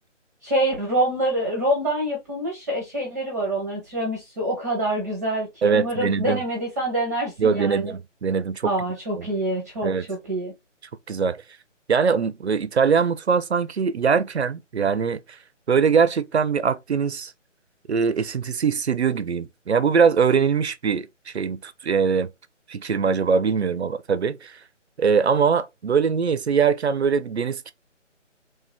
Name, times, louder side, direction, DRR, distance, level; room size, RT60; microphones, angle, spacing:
voice 1, 0.4-7.9 8.6-10.5, right 1 dB, 15° right, 0.8 m, -26 dB
voice 2, 5.6-6.4 7.4-8.7 9.2-9.3 9.8-10.1 11.1-11.4 11.9-15.2 15.7-17.3 17.9-22.3 22.7-24.6 25.0-27.7, right 6 dB, 60° right, 0.6 m, -22 dB
3.3 x 2.8 x 3.3 m
figure-of-eight pair, 150°, 38 cm